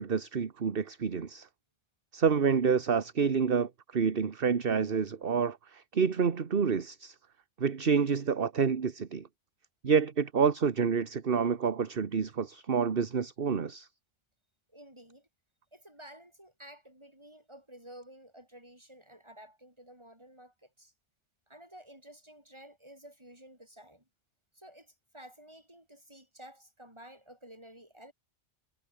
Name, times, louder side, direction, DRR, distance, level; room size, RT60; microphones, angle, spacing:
voice 1, 0.0-1.5 2.1-7.1 7.6-9.3 9.8-13.9, right 6 dB, 55° right, 1.5 m, -28 dB
voice 2, 14.7-15.3 15.7-20.9 21.5-24.1 24.5-28.1, right 1 dB, 25° right, 8.1 m, -52 dB
omnidirectional pair, 1.2 m